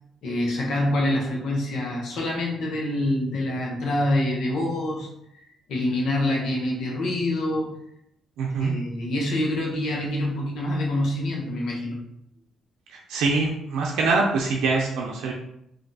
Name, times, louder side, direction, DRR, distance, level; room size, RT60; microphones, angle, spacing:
voice 1, 0.2-5.1 5.3-7.8 8.6-12.0, left 1 dB, 75° left, -1 dB, 0.9 m, -26 dB
voice 2, 8.4-8.8 12.9-15.3, right 3 dB, 90° right, -1 dB, 0.5 m, -24 dB
2.7 x 2.2 x 4.0 m, 0.77 s
cardioid pair, 90°, 0 cm